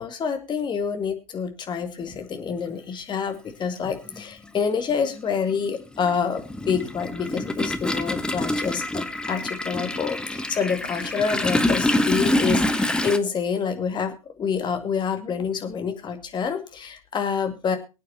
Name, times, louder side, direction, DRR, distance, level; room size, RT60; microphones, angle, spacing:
voice 1, 0.0-17.8, left 6 dB, 25° left, 6 dB, 2.2 m, -27 dB
Toilet flush, 2.7-2.8 4.1-4.2 4.6-13.2, left 1 dB, 5° left, 1.0 m, -26 dB
24.0 x 8.9 x 2.9 m, 0.30 s
figure-of-eight pair, 85°, 19 cm